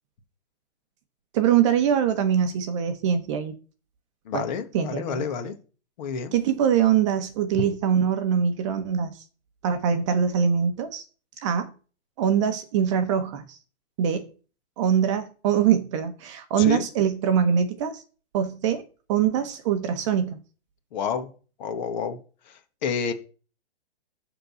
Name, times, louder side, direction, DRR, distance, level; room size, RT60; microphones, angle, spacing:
voice 1, 1.3-3.5 4.3-4.4 4.7-5.2 6.3-9.2 9.6-11.0 11.4-11.7 12.2-13.6 14.0-14.3 14.8-18.0 18.3-18.8 19.1-20.4, right 8 dB, 25° right, 0.9 m, -23 dB
voice 2, 4.2-5.5 6.0-6.3 7.5-7.6 16.6-16.9 20.9-21.3 21.6-22.2 22.5-23.1, left 6 dB, 40° left, 1.6 m, -29 dB
11.0 x 3.9 x 7.0 m
hypercardioid pair, 165°, 34 cm